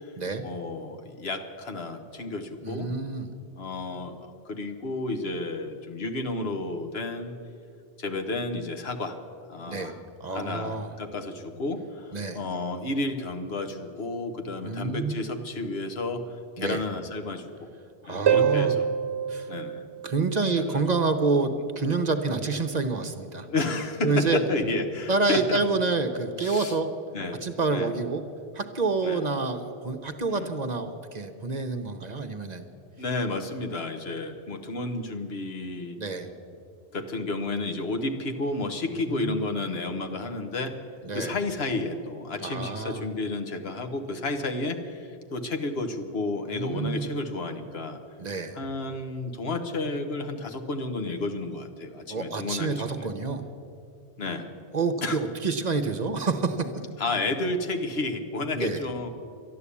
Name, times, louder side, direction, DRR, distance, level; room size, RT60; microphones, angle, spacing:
voice 1, 0.4-2.9 3.6-7.3 8.0-9.2 9.5-10.0 10.3-16.2 16.6-17.7 18.1-18.9 19.5-19.9 20.4-20.8 21.5-21.6 23.5-25.6 26.4-26.8 27.1-27.4 27.7-27.9 29.0-29.2 30.3-30.5 33.0-36.0 36.9-40.7 41.1-48.0 48.5-53.1 54.2-54.5 55.0-55.2 57.0-59.1, left 2 dB, 75° left, 6 dB, 1.3 m, -31 dB
voice 2, 2.6-3.3 9.7-10.9 12.1-12.4 14.6-15.2 16.6-16.8 18.0-18.8 19.3-19.5 20.0-23.5 24.0-24.4 25.1-26.9 27.4-28.2 28.5-32.7 36.0-36.3 39.0-39.4 41.0-41.3 42.4-43.0 46.5-47.1 48.2-48.6 52.1-53.5 54.7-56.9 58.5-58.9, right 4 dB, 45° right, 7 dB, 0.8 m, -28 dB
Harp, 18.3-20.8 24.3-24.4, right 8 dB, 80° right, 0.9 m, -26 dB
12.0 x 11.5 x 8.4 m, 2.5 s
omnidirectional pair, 1.1 m